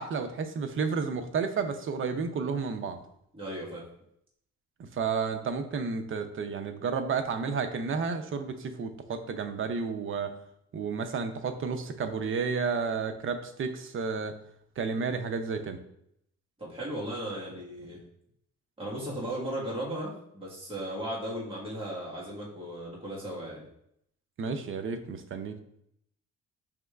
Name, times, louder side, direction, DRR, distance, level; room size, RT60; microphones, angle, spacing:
voice 1, 0.0-3.0 4.8-10.3 10.7-14.3 14.8-15.8 24.4-25.6, right 5 dB, 45° right, 8 dB, 0.5 m, -31 dB
voice 2, 3.3-3.8 16.6-18.0 18.8-23.6, right 1 dB, 20° right, -5 dB, 1.4 m, -36 dB
4.9 x 3.1 x 2.3 m, 0.74 s
cardioid pair, 90°, 30 cm